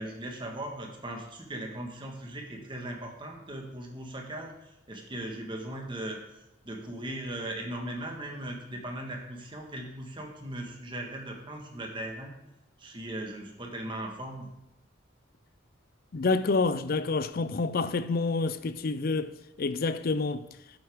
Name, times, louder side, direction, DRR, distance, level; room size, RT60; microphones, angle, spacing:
voice 1, 0.0-6.2 6.6-12.3 12.8-14.5, right 1 dB, 25° right, 1.5 m, -38 dB
voice 2, 16.1-20.5, left 3 dB, 50° left, 0.5 m, -28 dB
11.0 x 7.9 x 3.6 m
head